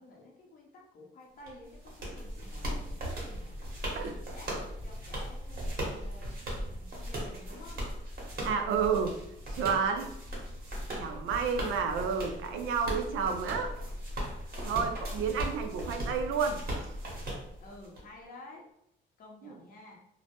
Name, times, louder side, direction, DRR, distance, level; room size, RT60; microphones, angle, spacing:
voice 1, 0.0-3.6 4.0-6.4 6.7-7.8 11.2-11.7 15.3-15.5 17.6-18.6 19.2-20.0, left 2 dB, 45° left, -1 dB, 0.6 m, -52 dB
sound 1, 1.5-18.0, equal, 50° right, 0.9 m, -38 dB
voice 2, 8.4-9.2 9.5-10.1 11.0-13.7 14.6-16.9 19.4-19.5, right 6 dB, 85° right, 5 dB, 0.4 m, -30 dB
2.1 x 2.0 x 2.8 m, 0.79 s
cardioid pair, 90°, 20 cm